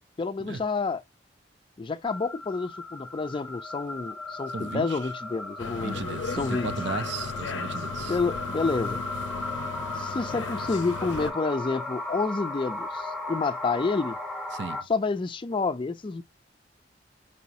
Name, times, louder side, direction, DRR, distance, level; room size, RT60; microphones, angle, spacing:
voice 1, 0.2-1.0 1.8-6.0 6.3-6.7 8.1-9.0 9.9-14.2 14.8-16.2, left 4 dB, 25° left, 0.3 m, -29 dB
sound 1, 2.0-14.8, left 2 dB, ahead, 0.9 m, -36 dB
voice 2, 4.5-5.0 5.8-8.2 14.5-14.8, right 4 dB, 70° right, 0.6 m, -35 dB
sound 2, 5.6-11.3, left 5 dB, 85° left, 0.5 m, -36 dB
4.8 x 2.9 x 2.6 m
head